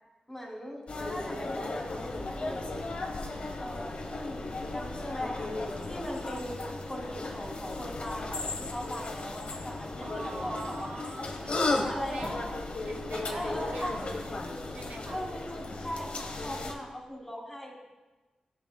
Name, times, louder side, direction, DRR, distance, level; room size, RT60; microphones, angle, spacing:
voice 1, 0.3-2.9 3.6-4.5 4.7-5.5 5.8-10.9 11.7-12.5 13.3-14.1 15.0-17.8, equal, 15° left, -3 dB, 2.9 m, -39 dB
sound 1, 0.9-16.7, left 2 dB, 55° left, 1.0 m, -35 dB
voice 2, 10.0-12.5 12.8-14.2 14.7-15.2, right 2 dB, 75° right, 2 dB, 0.8 m, -44 dB
13.0 x 7.0 x 2.3 m, 1.2 s
cardioid pair, 60°, 2 cm